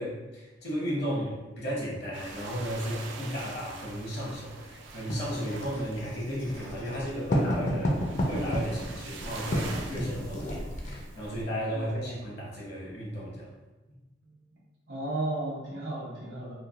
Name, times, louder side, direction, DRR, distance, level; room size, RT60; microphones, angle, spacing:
voice 1, 0.0-8.0 8.3-13.5, equal, 65° left, -5 dB, 0.9 m, -34 dB
sound 1, 2.1-11.4, right 2 dB, 85° right, 0.4 m, -43 dB
Writing, 5.1-11.0, equal, 40° left, 0.4 m, -31 dB
voice 2, 11.7-12.2 14.2-14.5 14.9-16.5, right 2 dB, 65° right, -7 dB, 0.9 m, -34 dB
3.2 x 2.2 x 2.4 m, 1.0 s
head